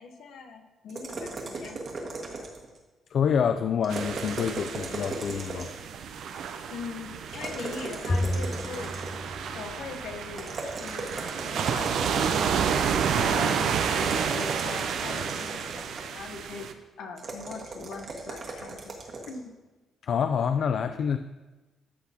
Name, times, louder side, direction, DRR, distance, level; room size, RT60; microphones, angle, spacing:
voice 1, 0.0-1.8 6.7-8.9 9.5-11.1 11.5-12.5 13.2-16.7 17.0-19.0 19.3-19.5, left 5 dB, 75° left, 4 dB, 1.0 m, -41 dB
sound 1, 0.9-2.8 3.8-5.9 7.3-9.3 10.4-12.7 13.9-16.2 17.2-19.4, right 3 dB, 50° right, 1.7 m, -37 dB
voice 2, 3.1-5.7 20.0-21.2, left 7 dB, 60° left, 9 dB, 0.3 m, -27 dB
sound 2, 3.9-16.7, right 7 dB, 70° right, 0.6 m, -30 dB
Bowed string instrument, 8.1-10.6, left 1 dB, 25° left, 0.8 m, -32 dB
14.0 x 6.1 x 2.9 m, 1.2 s
cardioid pair, 90°, 0 cm